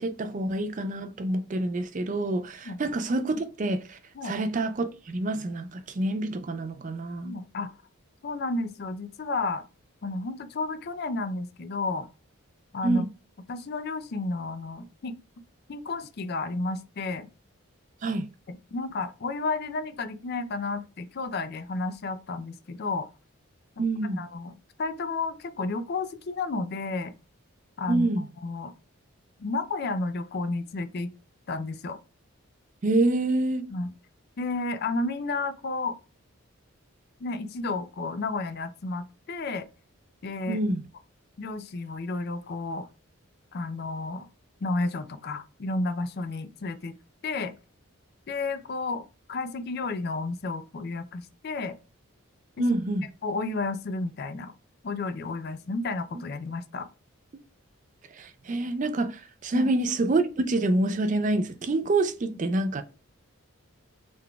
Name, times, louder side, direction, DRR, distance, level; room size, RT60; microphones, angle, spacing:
voice 1, 0.0-7.3 12.8-13.1 18.0-18.3 23.8-24.3 27.9-28.3 32.8-33.7 40.5-40.8 52.6-53.1 58.1-62.8, right 2 dB, 35° right, 0.3 m, -27 dB
voice 2, 7.2-7.8 8.2-9.6 10.0-12.1 12.7-13.0 13.5-15.2 15.7-17.3 18.5-23.1 23.8-23.9 24.2-24.5 24.8-27.1 27.8-28.7 29.4-31.1 31.5-32.0 33.7-33.9 34.4-36.0 37.2-39.6 40.2-40.6 41.4-42.9 43.5-44.3 44.6-46.9 47.2-47.5 48.3-51.7 52.6-52.7 53.2-54.5 54.8-56.9 59.5-59.7, left 3 dB, 45° left, 0.4 m, -32 dB
3.9 x 3.4 x 2.2 m
head